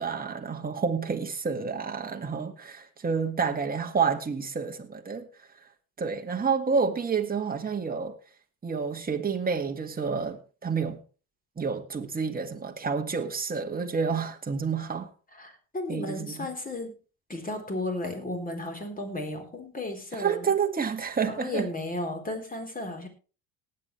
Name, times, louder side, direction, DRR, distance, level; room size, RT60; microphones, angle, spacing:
voice 1, 0.0-5.3 6.0-8.2 8.6-11.0 11.6-15.1 15.9-16.5 20.1-21.7, right 5 dB, 20° right, 4 dB, 1.9 m, -29 dB
voice 2, 15.3-17.0 17.3-20.5 21.3-23.1, left 2 dB, 20° left, 4 dB, 3.9 m, -34 dB
19.0 x 8.6 x 3.2 m, 0.35 s
hypercardioid pair, 75°, 42 cm